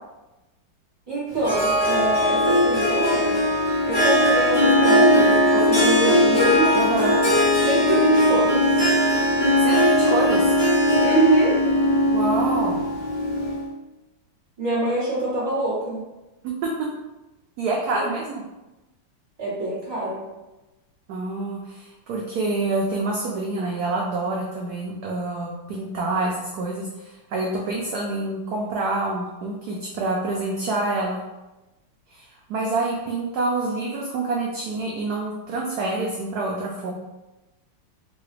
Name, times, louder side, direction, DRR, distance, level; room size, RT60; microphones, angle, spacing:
voice 1, 1.1-3.4 3.8-6.8 7.6-8.9 11.0-11.6 14.6-16.0 19.4-20.3, right 2 dB, 15° right, -9 dB, 1.0 m, -25 dB
Harp, 1.4-13.6, left 1 dB, 30° left, 0.4 m, -19 dB
voice 2, 6.7-7.2 9.6-10.5 12.1-12.8 16.4-16.9 17.6-18.4 21.1-31.2 32.1-36.9, right 2 dB, 80° right, -2 dB, 0.8 m, -27 dB
3.8 x 2.3 x 3.2 m, 1.0 s
omnidirectional pair, 2.2 m